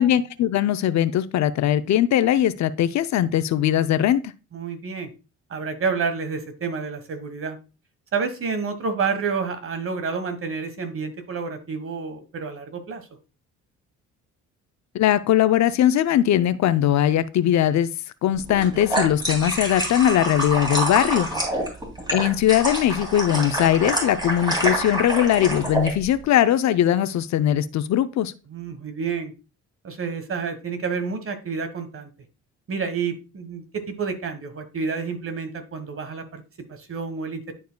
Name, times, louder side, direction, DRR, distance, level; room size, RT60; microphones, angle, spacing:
voice 1, 0.0-4.3 14.9-17.9 18.2-21.3 22.1-28.3, left 11 dB, 65° left, 0.6 m, -20 dB
voice 2, 4.5-5.1 5.5-7.6 8.1-13.1 21.6-21.7 28.5-29.3 29.8-32.1 32.7-36.4 36.7-37.5, right 5 dB, 45° right, 1.3 m, -29 dB
sound 1, 18.5-25.9, right 1 dB, 15° right, 2.9 m, -26 dB
11.0 x 4.6 x 2.2 m
cardioid pair, 90°, 30 cm